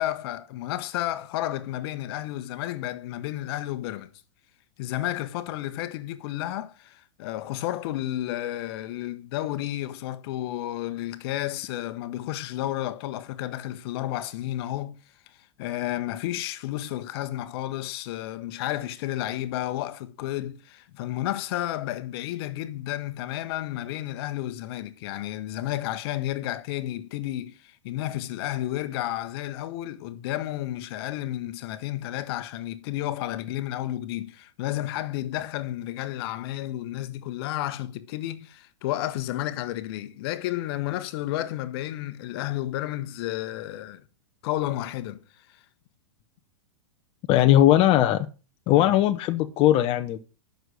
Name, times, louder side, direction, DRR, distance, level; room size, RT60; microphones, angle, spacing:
voice 1, 0.0-4.1 4.8-15.0 15.3-44.0 44.4-45.2 45.5-45.6 48.9-49.0, left 14 dB, 55° left, 1.2 m, -32 dB
voice 2, 47.3-48.3 48.7-50.2, left 13 dB, 35° left, 0.9 m, -19 dB
11.0 x 6.6 x 6.4 m
hypercardioid pair, 125°, 15 cm